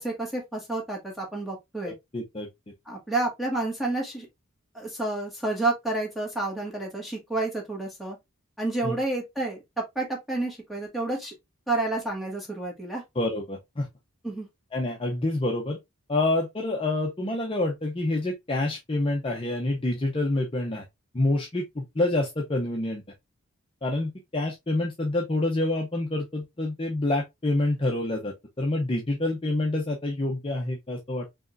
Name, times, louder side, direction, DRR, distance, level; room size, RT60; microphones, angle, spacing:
voice 1, 0.0-1.9 2.9-4.3 4.7-8.2 8.6-11.4 11.7-13.0 14.2-14.5, right 2 dB, ahead, 1.3 m, -30 dB
voice 2, 1.8-2.5 8.8-9.0 13.2-13.9 14.7-15.8 16.1-20.8 21.1-23.0 23.8-28.3 28.6-31.2, left 2 dB, 25° left, 0.5 m, -27 dB
4.9 x 3.0 x 2.5 m
head